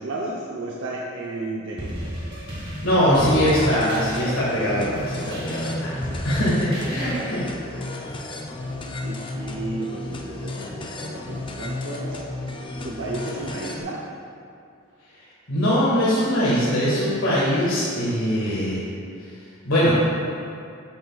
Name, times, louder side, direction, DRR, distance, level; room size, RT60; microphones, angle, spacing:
voice 1, 0.0-1.9 7.0-7.2 7.7-7.8 8.9-12.2 12.8-14.0, right 2 dB, 65° right, -5 dB, 0.7 m, -33 dB
sound 1, 1.8-7.4, equal, 25° right, 1.2 m, -34 dB
voice 2, 2.6-5.9 6.2-7.4 15.5-18.8 19.6-19.9, equal, 85° left, -10 dB, 1.6 m, -22 dB
sound 2, 3.1-13.8, left 2 dB, 25° left, 0.4 m, -33 dB
8.0 x 7.8 x 2.3 m, 2.4 s
head